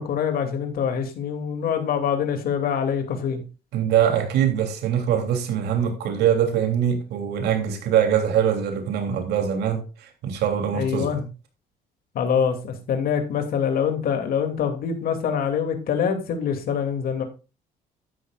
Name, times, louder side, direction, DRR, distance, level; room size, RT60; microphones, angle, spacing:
voice 1, 0.0-3.4 10.7-11.3 12.1-17.2, left 7 dB, 60° left, 2.6 m, -25 dB
voice 2, 3.7-11.1, right 9 dB, 75° right, 3.1 m, -23 dB
12.0 x 9.3 x 2.5 m
cardioid pair, 110°, 17 cm